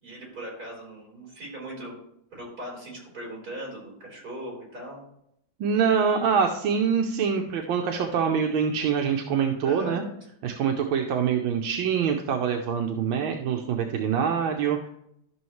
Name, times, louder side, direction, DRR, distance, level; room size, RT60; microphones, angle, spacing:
voice 1, 0.0-1.9 2.3-5.0 9.6-10.0, equal, 50° right, -2 dB, 4.4 m, -39 dB
voice 2, 5.6-10.0 10.4-14.9, right 7 dB, 80° right, 3 dB, 1.6 m, -25 dB
12.5 x 6.3 x 3.1 m, 0.75 s
omnidirectional pair, 2.2 m